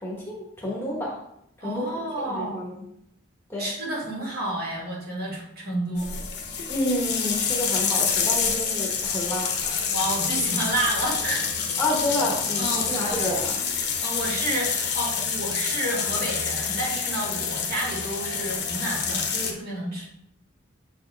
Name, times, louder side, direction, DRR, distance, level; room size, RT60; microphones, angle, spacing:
voice 1, 0.0-1.2 1.6-1.9 2.2-2.8 3.5-3.7 6.7-9.9 11.8-13.7, left 1 dB, 10° left, -3 dB, 1.1 m, -29 dB
voice 2, 1.6-2.7 3.6-6.2 9.8-11.5 12.6-13.3 14.0-20.1, right 1 dB, 45° right, -4 dB, 1.9 m, -30 dB
sound 1, 6.0-19.5, left 6 dB, 55° left, 0.9 m, -27 dB
7.2 x 4.3 x 3.3 m, 0.77 s
head